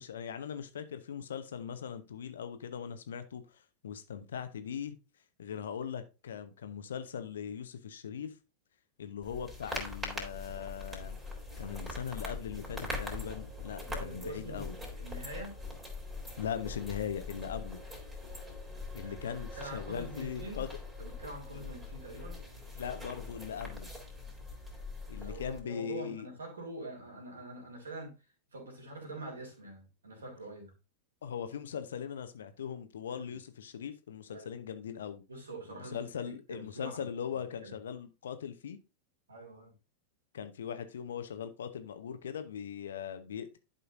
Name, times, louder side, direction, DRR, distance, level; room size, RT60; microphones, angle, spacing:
voice 1, 0.0-4.9 5.4-8.3 9.0-11.2 11.6-14.7 16.4-17.8 18.9-20.7 21.5-21.6 22.8-23.9 25.1-26.3 31.2-35.2 35.7-38.8 40.3-43.6, left 8 dB, 65° left, 0.9 m, -40 dB
sound 1, 9.2-25.6, left 2 dB, 15° right, 3.2 m, -42 dB
voice 2, 13.8-15.6 19.0-20.7 21.0-22.4 25.2-28.1 28.5-30.7 33.1-33.4 34.3-34.5 35.3-37.0 37.6-37.7 39.3-39.7, right 2 dB, 70° right, 3.4 m, -45 dB
11.0 x 5.5 x 2.6 m
figure-of-eight pair, 90°, 0 cm